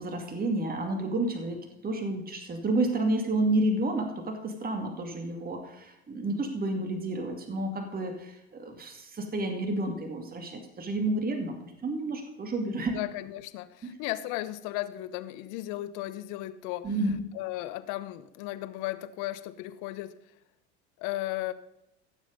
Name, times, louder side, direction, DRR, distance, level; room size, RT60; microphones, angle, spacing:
voice 1, 0.0-13.0 13.8-14.0 16.8-17.2, right 2 dB, 25° right, 4 dB, 2.4 m, -30 dB
voice 2, 12.9-16.9 17.3-20.1 21.0-21.5, left 16 dB, 60° left, 14 dB, 1.0 m, -35 dB
15.5 x 7.4 x 5.2 m, 0.86 s
hypercardioid pair, 85°, 34 cm